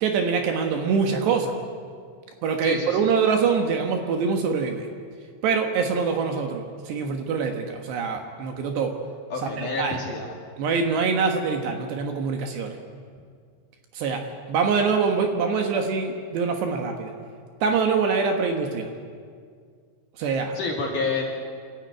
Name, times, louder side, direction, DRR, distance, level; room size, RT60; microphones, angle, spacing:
voice 1, 0.0-1.6 2.4-4.9 5.4-9.0 9.4-10.0 10.6-12.8 13.9-17.1 17.6-18.9 20.2-20.6, right 5 dB, 70° right, 4 dB, 3.1 m, -24 dB
voice 2, 2.6-3.1 9.3-10.3 20.5-21.3, left 3 dB, 50° left, -1 dB, 3.2 m, -29 dB
26.5 x 13.0 x 9.2 m, 2.1 s
omnidirectional pair, 5.7 m